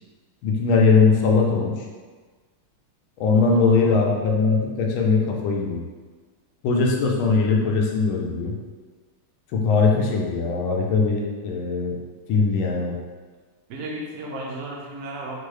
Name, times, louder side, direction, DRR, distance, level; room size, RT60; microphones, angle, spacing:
voice 1, 0.4-1.8 3.2-5.8 6.6-8.6 9.5-12.0 12.3-12.9, left 4 dB, 80° left, 0 dB, 1.4 m, -20 dB
voice 2, 3.2-4.0 13.7-15.4, right 1 dB, 65° right, -2 dB, 0.9 m, -35 dB
4.5 x 2.3 x 3.1 m, 1.4 s
omnidirectional pair, 2.3 m